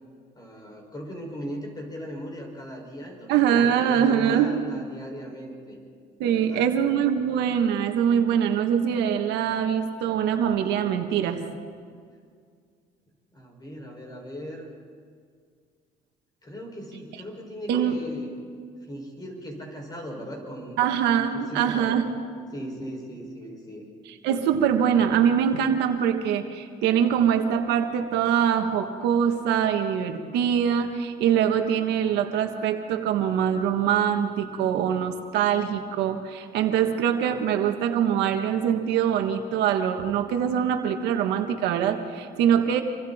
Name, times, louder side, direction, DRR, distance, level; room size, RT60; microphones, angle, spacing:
voice 1, 0.4-5.8 6.3-6.7 13.3-14.7 16.4-18.4 18.9-20.8 21.2-22.0 22.5-23.9, equal, 25° left, 1 dB, 6.1 m, -38 dB
voice 2, 3.3-4.5 6.2-11.4 17.7-18.0 20.8-22.1 24.2-42.8, right 8 dB, 90° right, 6 dB, 1.6 m, -23 dB
27.0 x 24.5 x 4.4 m, 2.1 s
cardioid pair, 110°, 17 cm